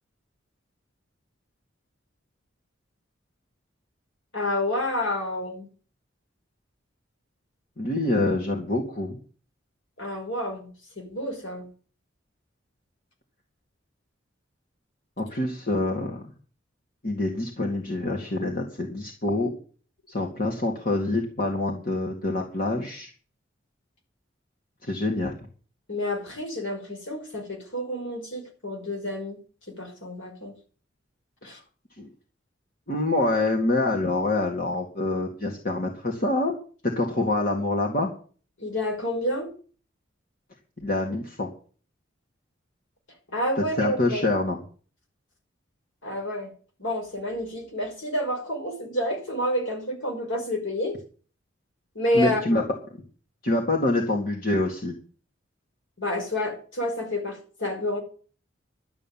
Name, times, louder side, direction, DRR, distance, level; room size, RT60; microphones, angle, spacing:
voice 1, 4.3-5.7 10.0-10.7 11.0-11.7 25.9-29.4 29.7-30.5 31.4-31.6 38.6-39.5 43.3-44.4 46.0-46.5 46.8-51.0 51.9-52.6 56.0-58.0, left 1 dB, 80° left, 2 dB, 5.5 m, -29 dB
voice 2, 7.8-9.2 15.2-16.2 17.0-19.5 20.1-23.1 24.8-25.3 31.4-31.6 32.0-32.1 32.9-36.6 36.8-38.1 40.8-41.5 43.8-44.6 52.1-52.6 53.4-54.9, left 2 dB, 50° left, 1 dB, 2.1 m, -26 dB
12.0 x 7.2 x 9.2 m, 0.41 s
head